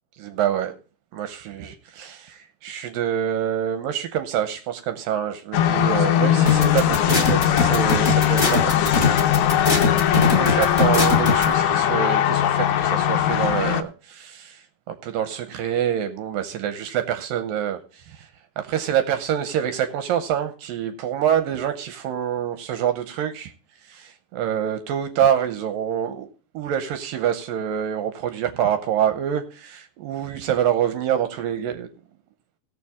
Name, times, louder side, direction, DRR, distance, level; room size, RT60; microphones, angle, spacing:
voice 1, 0.2-0.8 1.1-9.2 10.1-18.3 18.6-23.5 23.8-26.3 26.5-31.9, right 9 dB, 75° right, 2.3 m, -26 dB
sound 1, 5.5-13.8, left 10 dB, 85° left, 2.7 m, -20 dB
sound 2, 6.5-11.4, left 3 dB, 20° left, 1.5 m, -21 dB
17.0 x 6.9 x 3.5 m
omnidirectional pair, 4.4 m